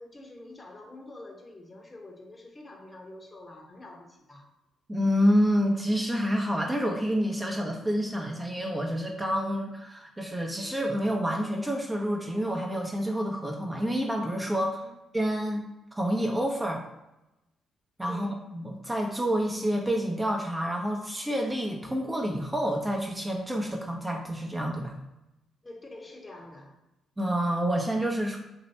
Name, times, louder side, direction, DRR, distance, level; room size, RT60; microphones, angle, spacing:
voice 1, 0.0-4.5 14.6-14.9 18.1-18.4 25.6-26.8, left 2 dB, 30° left, 1 dB, 1.0 m, -47 dB
voice 2, 4.9-14.8 15.1-15.7 15.9-16.8 18.0-25.0 27.2-28.4, equal, 15° right, 0 dB, 0.7 m, -28 dB
3.0 x 2.8 x 4.2 m, 0.93 s
hypercardioid pair, 45°, 0 cm